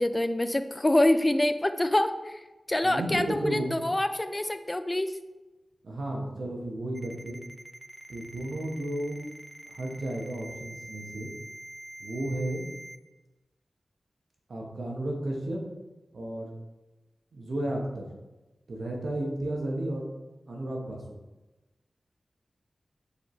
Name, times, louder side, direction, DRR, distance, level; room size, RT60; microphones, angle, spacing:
voice 1, 0.0-5.1, left 1 dB, 25° left, 10 dB, 0.3 m, -26 dB
voice 2, 2.8-3.9 5.8-7.4 8.1-9.2 9.7-11.3 12.0-12.7 14.5-15.6 16.1-16.5 17.3-18.1 18.7-20.1 20.5-21.0, right 1 dB, 75° right, 0 dB, 0.9 m, -33 dB
Ringtone, 6.9-13.0, right 1 dB, 20° right, 0.6 m, -45 dB
4.8 x 3.2 x 3.1 m, 1.1 s
cardioid pair, 40°, 0 cm